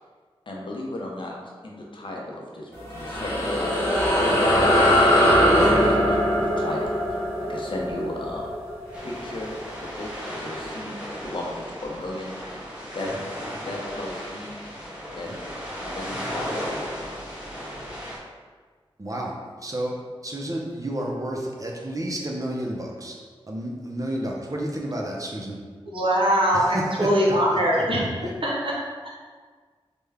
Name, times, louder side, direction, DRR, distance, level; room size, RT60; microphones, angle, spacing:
voice 1, 0.5-1.3 1.6-4.4 5.2-8.4 9.0-12.3 12.9-13.1 13.6-14.5 15.1-15.3 15.8-17.0, left 1 dB, 55° left, -2 dB, 0.6 m, -36 dB
sound 1, 2.7-9.6, equal, 25° left, 1.0 m, -21 dB
sound 2, 8.9-18.2, equal, 10° right, 0.9 m, -35 dB
voice 2, 19.0-23.2 23.5-25.6 26.5-27.8 28.2-28.3, right 1 dB, 35° right, -1 dB, 0.6 m, -31 dB
voice 3, 25.9-28.1 28.4-28.7 29.0-29.1, equal, 60° right, -5 dB, 0.8 m, -22 dB
3.4 x 2.2 x 3.3 m, 1.5 s
cardioid pair, 45°, 10 cm